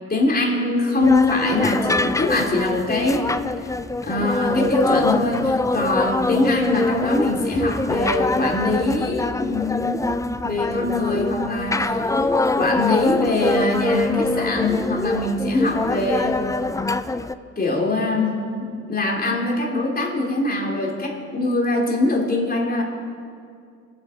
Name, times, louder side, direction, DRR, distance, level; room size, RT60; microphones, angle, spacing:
voice 1, 0.1-3.3 4.0-10.1 10.4-12.0 12.6-16.4 17.5-22.8, left 2 dB, 30° left, -1 dB, 3.4 m, -22 dB
sound 1, 1.0-17.3, left 2 dB, 10° left, 0.5 m, -24 dB
25.5 x 8.7 x 5.2 m, 2.3 s
cardioid pair, 90°, 30 cm